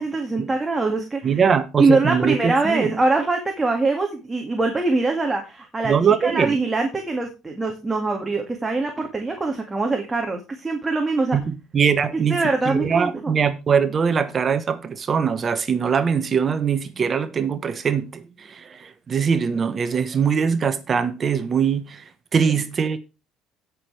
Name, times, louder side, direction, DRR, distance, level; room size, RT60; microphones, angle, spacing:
voice 1, 0.0-1.4 1.8-5.9 6.2-11.4 12.3-13.4, right 3 dB, 15° right, 2.0 m, -23 dB
voice 2, 1.2-3.0 5.8-6.6 11.3-22.0 22.3-23.0, right 6 dB, 30° right, 1.1 m, -22 dB
17.0 x 6.3 x 3.3 m
cardioid pair, 130°, 0 cm